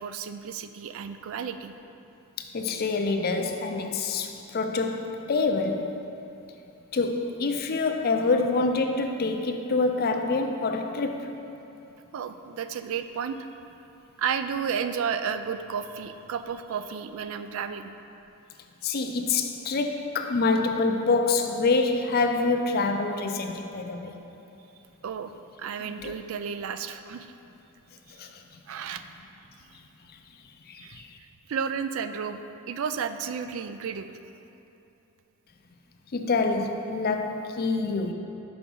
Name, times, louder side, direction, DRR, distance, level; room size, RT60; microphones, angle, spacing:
voice 1, 0.0-1.7 12.1-13.4 14.2-17.9 25.0-25.3 25.6-27.3 28.1-28.2 28.7-29.0 30.8-31.0 31.5-32.4 32.7-34.2, right 7 dB, 65° right, 10 dB, 0.3 m, -32 dB
voice 2, 2.4-5.9 6.9-11.3 18.8-24.2 25.8-26.1 28.1-28.4 30.7-31.2 36.1-38.1, left 3 dB, 45° left, 5 dB, 0.4 m, -26 dB
6.0 x 5.1 x 5.3 m, 3.0 s
head